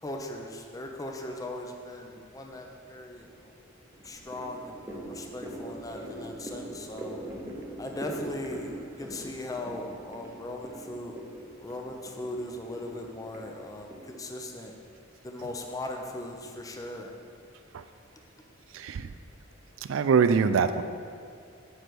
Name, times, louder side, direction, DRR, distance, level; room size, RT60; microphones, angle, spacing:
voice 1, 0.0-3.5 4.0-7.2 7.8-8.7 9.0-11.2 11.6-14.7 15.2-17.2, left 1 dB, 15° left, 2 dB, 0.6 m, -39 dB
sound 1, 2.4-2.9 3.3-14.1, right 1 dB, 15° right, 0.8 m, -43 dB
voice 2, 18.7-19.1 19.9-20.8, right 6 dB, 70° right, 11 dB, 0.4 m, -23 dB
9.4 x 3.3 x 6.0 m, 2.3 s
head